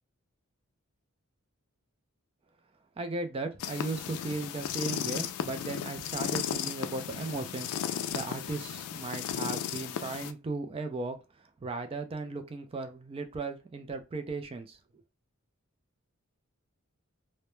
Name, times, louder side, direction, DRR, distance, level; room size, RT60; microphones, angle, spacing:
voice 1, 3.0-7.7 8.1-11.2 11.6-14.8, right 3 dB, 25° right, 0.3 m, -36 dB
sound 1, 3.6-10.3, left 9 dB, 90° left, 0.3 m, -35 dB
2.1 x 2.1 x 3.0 m
head